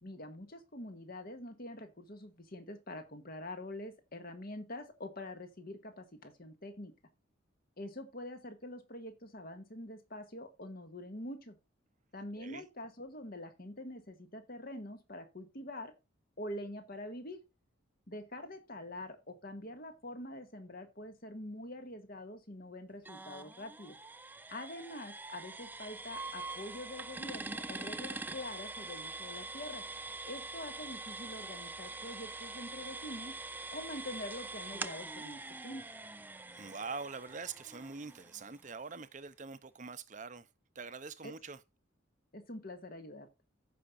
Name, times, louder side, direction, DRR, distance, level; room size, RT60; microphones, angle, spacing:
voice 1, 0.0-6.9 7.8-11.6 12.1-15.9 16.4-17.4 18.1-24.0 24.5-29.8 30.2-33.4 33.7-35.8 41.2-41.3 42.3-43.3, left 1 dB, 45° left, 1.9 m, -45 dB
sound 1, 23.0-38.7, right 3 dB, 10° right, 0.4 m, -44 dB
voice 2, 36.5-40.5 40.7-41.6, right 4 dB, 40° right, 0.7 m, -44 dB
15.5 x 5.8 x 2.6 m
head